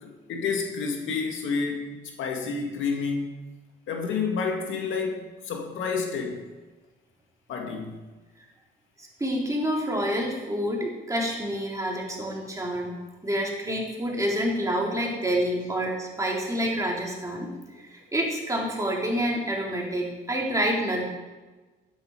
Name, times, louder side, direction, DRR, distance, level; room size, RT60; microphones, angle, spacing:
voice 1, 0.0-1.9 2.2-3.3 3.9-6.4 7.5-7.9, left 5 dB, 80° left, 2 dB, 2.1 m, -29 dB
voice 2, 9.2-12.9 13.2-17.5 17.9-21.0, equal, 15° right, -2 dB, 3.7 m, -28 dB
11.5 x 10.5 x 4.9 m, 1.2 s
cardioid pair, 90°, 20 cm